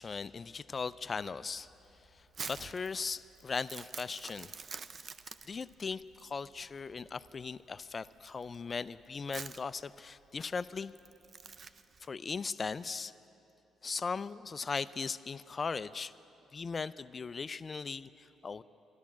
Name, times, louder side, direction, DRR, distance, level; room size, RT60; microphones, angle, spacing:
voice 1, 0.0-1.7 2.2-4.5 5.5-10.9 12.0-13.1 13.8-16.1 16.5-18.6, left 5 dB, 35° left, 16 dB, 0.3 m, -38 dB
Crumpling crinkling, 1.5-12.1, right 5 dB, 45° right, 0.5 m, -48 dB
13.0 x 11.5 x 7.3 m, 2.9 s
cardioid pair, 90°, 0 cm